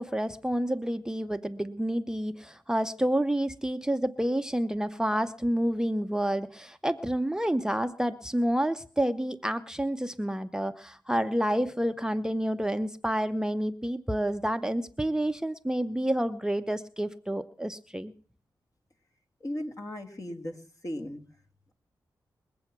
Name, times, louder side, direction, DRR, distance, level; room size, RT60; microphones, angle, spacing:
voice 1, 0.0-18.1, right 1 dB, 5° right, 8 dB, 0.7 m, -29 dB
voice 2, 19.4-21.2, left 1 dB, 40° left, 2 dB, 2.2 m, -37 dB
21.5 x 7.7 x 6.0 m, 0.43 s
cardioid pair, 55°, 8 cm